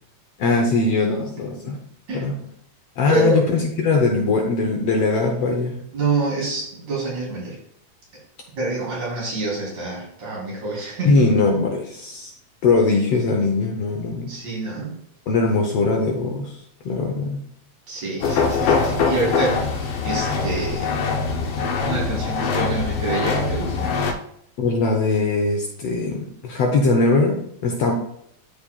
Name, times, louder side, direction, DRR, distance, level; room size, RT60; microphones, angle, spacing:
voice 1, 0.4-1.8 2.1-2.3 3.0-5.8 11.0-12.3 12.6-14.3 15.3-16.6 16.8-17.4 24.6-27.9, left 3 dB, 70° left, 2 dB, 1.6 m, -21 dB
voice 2, 3.1-3.4 5.9-7.6 8.6-11.2 14.3-15.0 17.9-20.9 21.4-21.5 21.8-23.9, right 3 dB, 65° right, -6 dB, 4.6 m, -26 dB
sound 1, 18.2-24.1, left 4 dB, 85° left, 1.2 m, -23 dB
12.5 x 5.0 x 2.3 m, 0.72 s
omnidirectional pair, 3.5 m